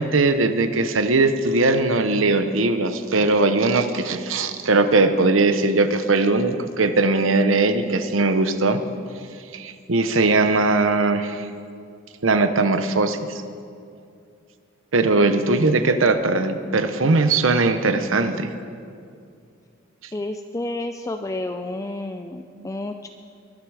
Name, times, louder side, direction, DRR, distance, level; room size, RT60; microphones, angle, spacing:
voice 1, 0.0-8.8 9.5-11.5 12.2-13.4 14.9-18.5 22.6-22.7, right 3 dB, 90° right, 10 dB, 0.9 m, -20 dB
voice 2, 15.6-16.0 20.1-23.1, left 2 dB, 15° left, 6 dB, 0.4 m, -31 dB
22.5 x 9.7 x 4.9 m, 2.4 s
head